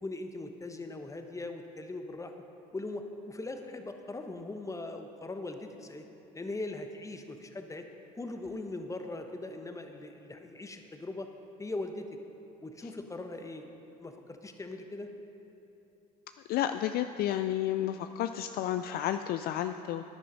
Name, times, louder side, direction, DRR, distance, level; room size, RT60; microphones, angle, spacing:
voice 1, 0.0-2.3 2.7-6.0 6.3-7.8 8.1-11.3 11.6-12.0 12.6-13.7 14.0-15.1, left 2 dB, 15° left, 6 dB, 1.1 m, -40 dB
voice 2, 16.5-20.0, left 11 dB, 50° left, 9 dB, 0.4 m, -31 dB
10.5 x 9.9 x 5.3 m, 3.0 s
hypercardioid pair, 60°, 20 cm